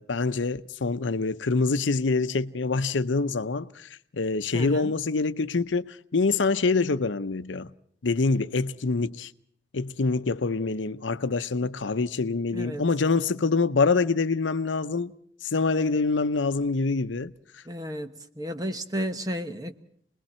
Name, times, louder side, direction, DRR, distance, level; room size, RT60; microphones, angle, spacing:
voice 1, 0.0-7.7 8.0-9.3 9.7-15.1 15.4-17.6, left 3 dB, 85° left, 0.7 m, -25 dB
voice 2, 4.5-4.9 12.5-12.8 17.6-19.7, equal, 20° right, 1.1 m, -33 dB
29.0 x 20.5 x 4.4 m
head